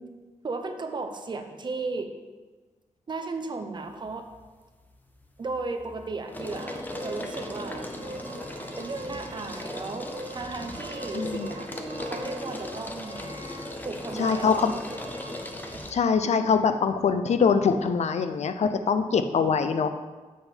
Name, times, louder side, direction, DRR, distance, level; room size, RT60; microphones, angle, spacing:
voice 1, 0.4-2.1 3.1-4.3 5.4-7.9 8.8-11.7 12.0-13.3 13.8-14.8 15.7-15.8, right 3 dB, 40° right, 6 dB, 0.7 m, -35 dB
sound 1, 3.9-4.4 4.8-15.9, left 1 dB, 15° left, 0.6 m, -38 dB
sound 2, 6.3-16.2, right 2 dB, 85° right, 1.6 m, -43 dB
voice 2, 11.1-11.5 14.2-14.7 15.9-19.9, left 5 dB, 65° left, 9 dB, 0.5 m, -23 dB
7.5 x 5.5 x 4.4 m, 1.3 s
wide cardioid pair, 165°, 12 cm